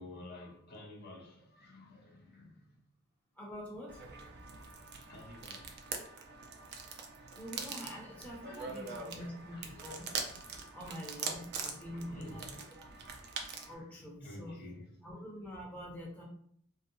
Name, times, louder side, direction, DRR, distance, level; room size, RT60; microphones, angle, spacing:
voice 1, 0.0-2.8 5.0-5.8 8.3-11.4 11.9-12.8 13.0-13.3 13.7-15.2, left 1 dB, 50° left, 0.6 m, -53 dB
voice 2, 3.4-4.1 7.0-10.1 10.7-12.9 13.7-14.5 15.0-16.2, equal, 10° left, 0.5 m, -46 dB
sound 1, 3.9-13.8, right 5 dB, 50° right, 0.4 m, -43 dB
2.6 x 2.0 x 2.6 m
head